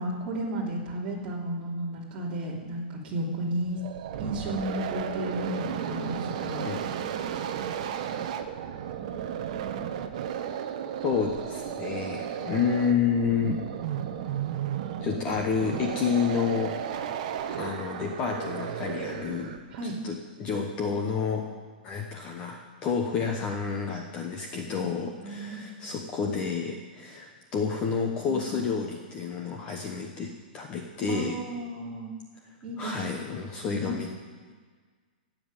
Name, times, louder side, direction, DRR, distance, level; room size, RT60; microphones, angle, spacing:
voice 1, 0.0-3.8 4.2-6.7 19.7-19.9 24.8-24.9 25.2-25.6 31.1-32.1 32.6-33.1 33.6-33.8, right 1 dB, 20° right, -4 dB, 3.2 m, -33 dB
sound 1, 3.7-19.8, right 9 dB, 40° right, 1.0 m, -34 dB
voice 2, 11.0-13.6 15.0-16.8 17.6-19.5 19.8-21.5 21.8-31.4 32.8-34.2, left 6 dB, 20° left, 2 dB, 1.0 m, -29 dB
16.0 x 7.5 x 9.1 m, 1.5 s
hypercardioid pair, 175°, 5 cm